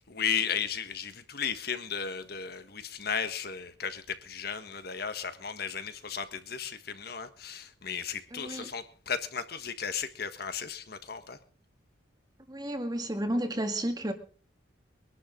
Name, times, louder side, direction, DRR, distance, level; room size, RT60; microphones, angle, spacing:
voice 1, 0.1-11.4, left 7 dB, 55° left, 1.5 m, -35 dB
voice 2, 8.3-8.7 12.5-14.1, right 1 dB, 20° right, 1.9 m, -32 dB
23.0 x 11.5 x 3.9 m
head